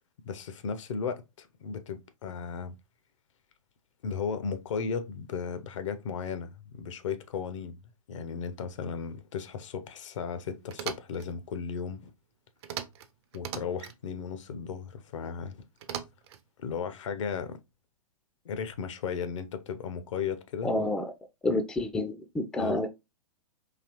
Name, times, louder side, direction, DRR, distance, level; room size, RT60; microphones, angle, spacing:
voice 1, 0.2-2.7 4.0-7.8 8.1-12.1 13.3-15.6 16.6-17.6 18.4-20.7 22.6-22.8, left 6 dB, 55° left, 0.6 m, -35 dB
sound 1, 10.7-11.3 12.6-13.1 13.3-14.0 15.8-16.4, right 9 dB, 45° right, 0.6 m, -38 dB
voice 2, 20.6-21.0 21.4-22.9, left 2 dB, 5° left, 0.4 m, -29 dB
3.9 x 2.9 x 2.9 m
figure-of-eight pair, 105°, 19 cm